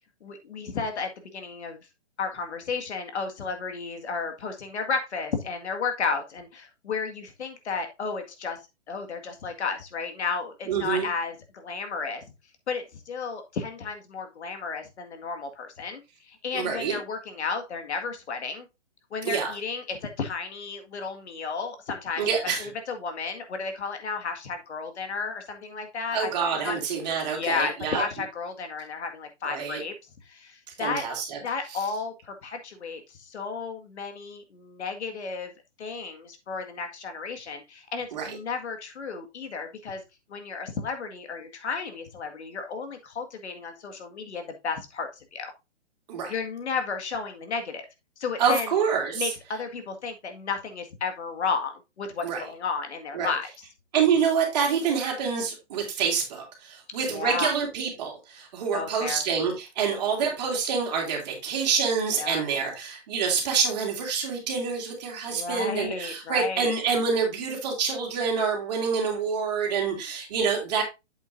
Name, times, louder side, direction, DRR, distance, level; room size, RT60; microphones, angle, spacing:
voice 1, 0.2-1.8 2.2-8.6 8.9-12.2 12.7-18.7 19.1-22.2 22.6-26.8 27.2-30.0 30.2-31.0 31.4-35.5 35.8-40.0 40.3-45.5 46.3-47.9 48.2-48.7 49.1-53.5 57.1-57.5 58.7-59.2 62.2-62.4 65.3-66.7, left 5 dB, 70° left, 6 dB, 1.9 m, -33 dB
voice 2, 10.7-11.1 16.5-17.0 19.2-19.5 22.2-22.7 26.1-28.0 29.4-29.8 30.8-31.4 31.7-31.8 38.1-38.4 46.1-46.3 48.4-49.3 52.2-52.4 53.1-53.3 53.9-70.8, right 6 dB, 35° right, 1 dB, 2.8 m, -27 dB
8.0 x 7.3 x 2.6 m, 0.24 s
hypercardioid pair, 170°, 35 cm